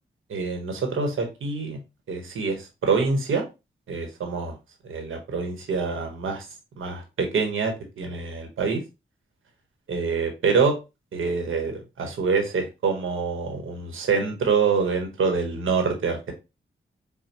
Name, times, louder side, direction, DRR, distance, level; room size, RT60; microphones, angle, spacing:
voice 1, 0.3-1.8 2.1-3.4 3.9-4.6 4.8-6.4 6.8-8.8 9.9-10.8 11.1-16.3, right 5 dB, 85° right, 1.2 m, -26 dB
5.6 x 2.2 x 2.9 m
cardioid pair, 55°, 20 cm